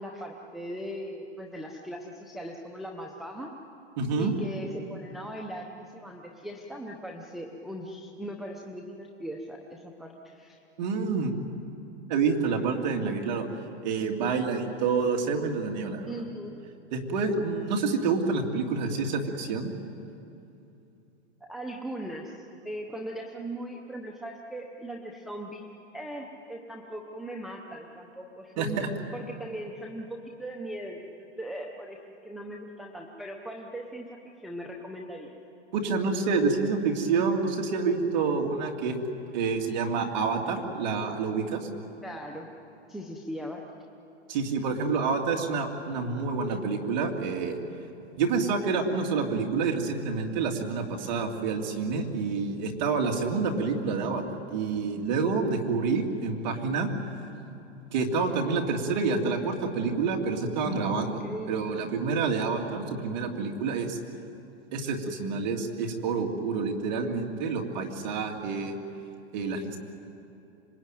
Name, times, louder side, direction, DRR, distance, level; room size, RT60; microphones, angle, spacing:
voice 1, 0.0-3.5 4.2-10.6 16.1-16.6 21.4-28.8 29.1-35.3 42.0-42.5 42.9-43.6 60.6-61.6, right 1 dB, ahead, -1 dB, 0.7 m, -39 dB
voice 2, 4.0-4.3 10.8-11.3 12.1-13.4 13.8-16.1 16.9-19.7 28.6-28.9 35.7-39.0 39.3-41.7 44.3-47.6 48.2-54.2 54.5-56.9 57.9-61.2 61.5-64.0 64.7-68.8 69.3-69.8, right 4 dB, 40° right, 2 dB, 2.8 m, -28 dB
26.0 x 22.0 x 9.2 m, 2.8 s
hypercardioid pair, 160°, 34 cm